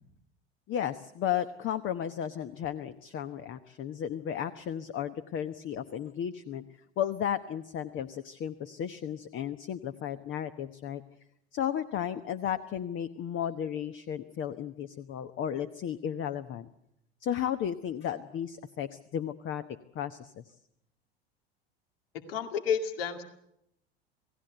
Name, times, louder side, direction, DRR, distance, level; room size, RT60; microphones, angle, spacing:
voice 1, 0.7-6.6 7.0-11.0 11.5-16.7 17.2-19.6 19.9-20.4, left 9 dB, 40° left, 11 dB, 1.1 m, -34 dB
voice 2, 22.3-23.2, left 7 dB, 65° left, 7 dB, 2.3 m, -30 dB
28.0 x 17.5 x 8.0 m, 0.78 s
figure-of-eight pair, 80°, 31 cm